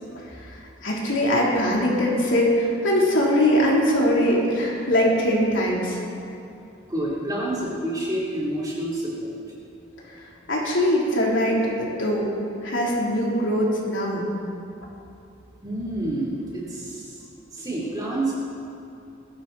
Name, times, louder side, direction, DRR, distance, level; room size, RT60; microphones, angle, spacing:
voice 1, 0.8-6.0 10.5-12.3 12.6-14.2, equal, 70° left, -4 dB, 3.4 m, -21 dB
voice 2, 6.9-9.3 15.6-17.1 17.5-18.3, right 1 dB, 20° right, -6 dB, 3.4 m, -28 dB
20.5 x 13.0 x 4.2 m, 2.7 s
head